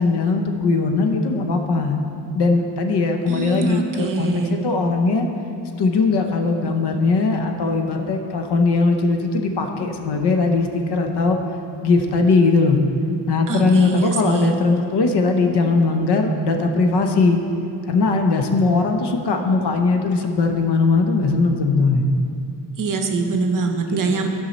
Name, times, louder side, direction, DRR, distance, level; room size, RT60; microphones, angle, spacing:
voice 1, 0.0-2.0 2.3-5.3 5.8-11.4 11.8-12.8 13.3-17.4 17.9-22.0 24.1-24.3, left 3 dB, 60° left, 4 dB, 0.8 m, -19 dB
voice 2, 3.3-4.5 13.5-14.5 22.8-24.3, right 3 dB, 45° right, 5 dB, 0.7 m, -23 dB
13.0 x 5.5 x 4.1 m, 2.6 s
wide cardioid pair, 180°, 46 cm